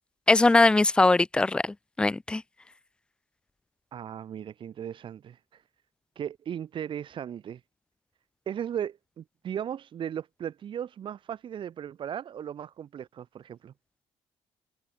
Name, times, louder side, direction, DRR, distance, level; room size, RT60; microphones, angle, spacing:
voice 1, 0.3-2.4, left 2 dB, 10° left, 0.5 m, -21 dB
voice 2, 3.9-5.6 6.1-7.6 8.5-13.7, right 9 dB, 45° right, 5.1 m, -37 dB
cardioid pair, 155°, 11 cm